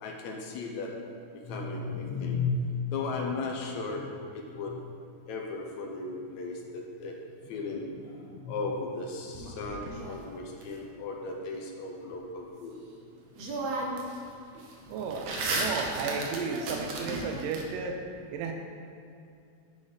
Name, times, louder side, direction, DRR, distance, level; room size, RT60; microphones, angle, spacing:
voice 1, 0.0-0.9 1.3-4.8 5.3-7.2 7.4-12.7, left 3 dB, 75° left, 1 dB, 1.8 m, -35 dB
sound 1, 9.3-10.6 12.9-13.0 13.4-14.2 14.5-17.6, right 2 dB, 65° right, 1.8 m, -34 dB
voice 2, 14.9-18.0 18.3-18.5, right 5 dB, 85° right, 3 dB, 2.2 m, -33 dB
9.9 x 4.0 x 4.9 m, 2.5 s
omnidirectional pair, 3.8 m